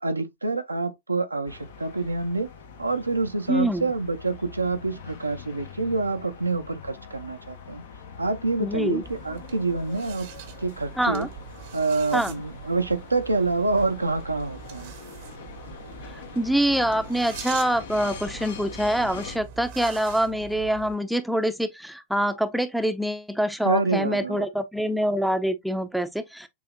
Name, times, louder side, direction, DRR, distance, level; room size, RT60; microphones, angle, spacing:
voice 1, 0.0-2.5 2.8-7.8 8.2-10.3 10.6-11.3 11.7-14.9 23.6-24.4, right 3 dB, 80° right, 0.6 m, -27 dB
sound 1, 1.4-19.4, left 6 dB, 60° left, 0.8 m, -43 dB
voice 2, 3.5-3.9 8.6-9.0 11.0-11.3 12.1-12.3 16.3-26.5, right 1 dB, ahead, 0.6 m, -25 dB
sound 2, 9.0-21.0, right 7 dB, 50° right, 0.8 m, -43 dB
7.0 x 2.8 x 2.2 m
figure-of-eight pair, 90°, 0 cm